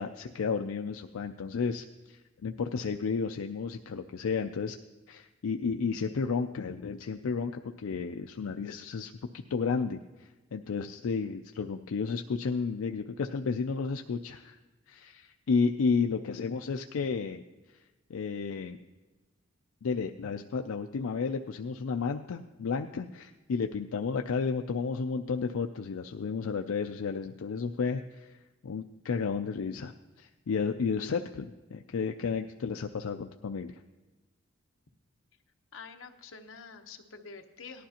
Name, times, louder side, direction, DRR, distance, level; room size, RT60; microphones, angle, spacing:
voice 1, 0.0-4.8 5.1-14.6 14.9-17.4 18.1-18.8 19.8-28.4 28.6-33.8, left 5 dB, 90° left, 6 dB, 0.4 m, -32 dB
voice 2, 35.7-37.9, left 5 dB, 70° left, 4 dB, 1.0 m, -47 dB
18.0 x 11.5 x 2.9 m, 1.2 s
head